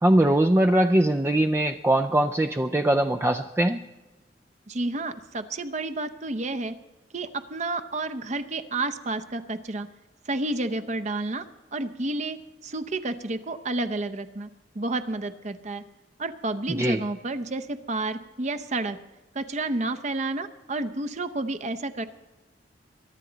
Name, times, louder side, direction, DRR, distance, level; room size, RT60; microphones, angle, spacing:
voice 1, 0.0-3.8 16.7-17.0, right 1 dB, 15° right, 5 dB, 0.4 m, -21 dB
voice 2, 4.7-6.7 7.1-9.9 10.3-11.4 11.7-14.5 14.7-15.8 16.2-19.0 19.3-22.1, right 2 dB, 40° right, 10 dB, 0.7 m, -30 dB
23.0 x 10.5 x 4.0 m, 1.1 s
head